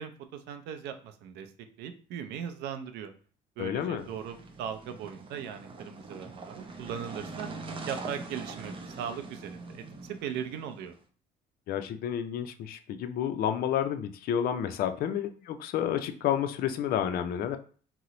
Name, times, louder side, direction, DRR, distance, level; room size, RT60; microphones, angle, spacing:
voice 1, 0.0-1.5 1.8-3.1 3.6-7.5 7.9-10.9, right 8 dB, 85° right, 8 dB, 0.5 m, -39 dB
voice 2, 3.6-4.0 11.7-17.6, left 9 dB, 60° left, 8 dB, 0.4 m, -30 dB
sound 1, 4.0-11.0, right 3 dB, 30° right, 0.5 m, -43 dB
2.8 x 2.0 x 3.8 m, 0.41 s
cardioid pair, 110°, 17 cm